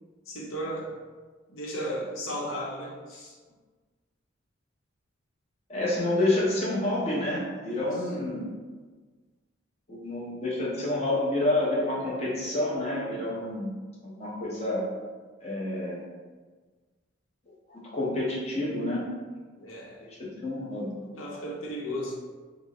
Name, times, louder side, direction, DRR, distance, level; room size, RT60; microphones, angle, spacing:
voice 1, 0.3-1.0 1.5-3.3 7.6-8.0 19.6-20.1 21.0-22.1, equal, 90° left, -2 dB, 0.7 m, -35 dB
voice 2, 5.7-8.5 9.9-13.7 14.0-14.9 15.4-16.0 17.7-19.0 20.0-20.9, left 1 dB, 30° left, -6 dB, 0.7 m, -28 dB
3.0 x 2.0 x 3.7 m, 1.4 s
head